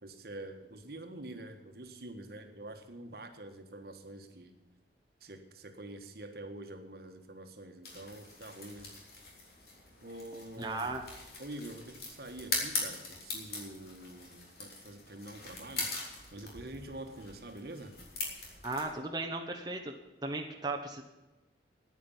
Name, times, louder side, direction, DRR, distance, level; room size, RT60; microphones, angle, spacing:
voice 1, 0.0-4.5 5.2-8.9 10.0-10.9 11.4-18.0, right 1 dB, 60° right, 6 dB, 1.6 m, -46 dB
sound 1, 7.8-18.8, left 3 dB, 60° left, 3.6 m, -41 dB
voice 2, 10.6-11.0 18.6-19.9 20.2-21.0, right 2 dB, 25° right, 2 dB, 1.1 m, -36 dB
9.7 x 9.7 x 8.9 m, 1.1 s
head